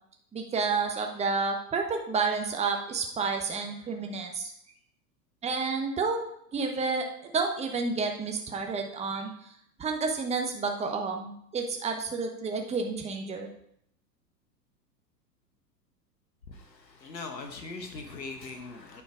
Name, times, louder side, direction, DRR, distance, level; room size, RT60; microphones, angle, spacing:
voice 1, 0.3-4.5 5.4-6.2 6.5-7.1 7.3-9.3 9.8-13.5, right 4 dB, 15° right, 3 dB, 1.0 m, -30 dB
voice 2, 16.5-19.0, left 3 dB, 90° left, 5 dB, 1.2 m, -41 dB
9.2 x 4.4 x 4.9 m, 0.73 s
hypercardioid pair, 100°, 49 cm